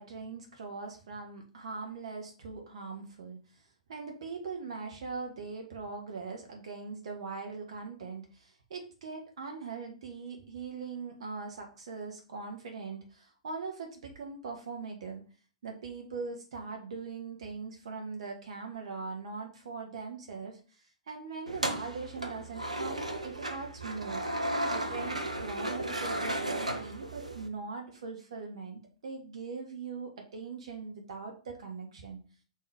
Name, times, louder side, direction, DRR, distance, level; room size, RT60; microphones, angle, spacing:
voice 1, 0.0-3.4 3.9-15.2 15.6-24.2 24.7-32.2, right 4 dB, 60° right, 3 dB, 0.9 m, -41 dB
sound 1, 21.5-27.5, right 1 dB, 85° right, 0.6 m, -34 dB
3.7 x 2.8 x 4.8 m, 0.38 s
figure-of-eight pair, 105°, 4 cm